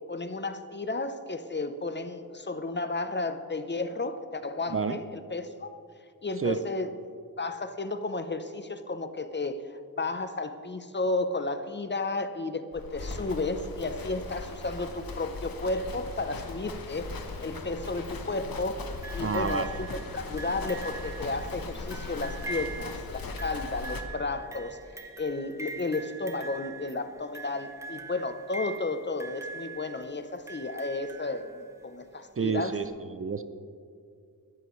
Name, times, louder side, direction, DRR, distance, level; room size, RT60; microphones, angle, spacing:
voice 1, 0.0-5.7 6.2-6.9 7.4-17.1 17.4-19.9 20.1-24.8 25.2-32.8, left 2 dB, 30° left, 10 dB, 0.6 m, -33 dB
voice 2, 4.7-5.0 6.4-6.6 19.2-19.7 32.4-33.4, right 5 dB, 35° right, 10 dB, 0.5 m, -29 dB
Livestock farm animals working animals, 12.7-24.0, left 3 dB, 70° left, 1.2 m, -40 dB
sound 1, 13.0-22.9, left 2 dB, 85° left, 2.1 m, -47 dB
sound 2, 19.0-31.9 32.8-32.9, right 3 dB, 10° right, 1.0 m, -43 dB
20.0 x 13.5 x 3.1 m, 2.3 s
wide cardioid pair, 120°, 37 cm